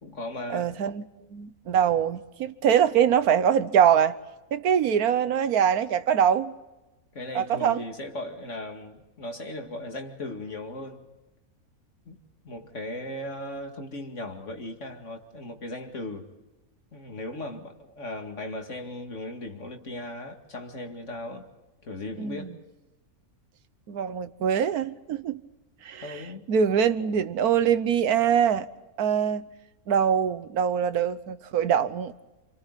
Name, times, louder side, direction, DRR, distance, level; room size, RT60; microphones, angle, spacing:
voice 1, 0.0-0.7 7.1-11.0 12.1-16.3 16.9-21.5 21.8-22.6 26.0-26.5, left 1 dB, 55° left, 2.5 m, -37 dB
voice 2, 0.5-1.0 1.3-4.2 4.5-6.5 7.3-7.8 22.2-22.5 23.9-25.4 25.8-26.2 26.5-28.7 29.0-29.5 29.9-32.1, right 8 dB, 90° right, 1.4 m, -23 dB
28.5 x 28.0 x 4.1 m
omnidirectional pair, 1.5 m